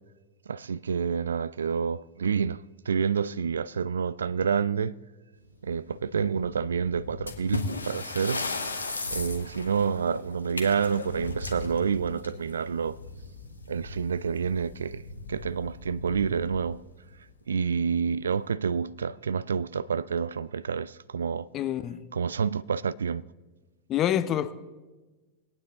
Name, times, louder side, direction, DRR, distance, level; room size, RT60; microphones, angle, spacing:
voice 1, 0.5-4.9 5.6-8.5 9.1-13.0 13.7-15.0 15.3-16.8 17.5-21.5 22.1-23.2, right 6 dB, 70° right, 0.3 m, -28 dB
sound 1, 5.4-17.3, left 2 dB, 85° right, 1.6 m, -44 dB
sound 2, 7.3-12.6 13.9-14.1 14.4-14.5 15.1-15.2 15.9-16.2, left 3 dB, 80° left, 1.2 m, -35 dB
voice 2, 21.5-22.0 23.9-24.5, left 11 dB, 30° left, 0.6 m, -27 dB
21.0 x 9.0 x 3.8 m
figure-of-eight pair, 90°, 0 cm